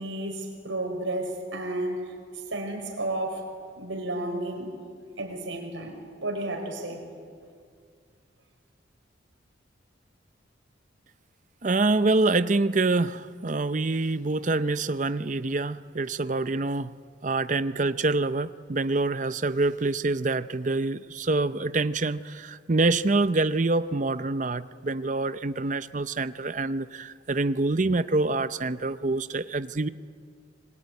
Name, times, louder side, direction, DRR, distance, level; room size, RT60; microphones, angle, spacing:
voice 1, 0.0-3.5 3.8-4.7 5.2-7.0, right 1 dB, 85° right, 2 dB, 5.5 m, -32 dB
voice 2, 11.6-16.9 17.2-29.9, right 3 dB, 40° right, 13 dB, 0.6 m, -26 dB
25.5 x 21.5 x 9.6 m, 2.1 s
head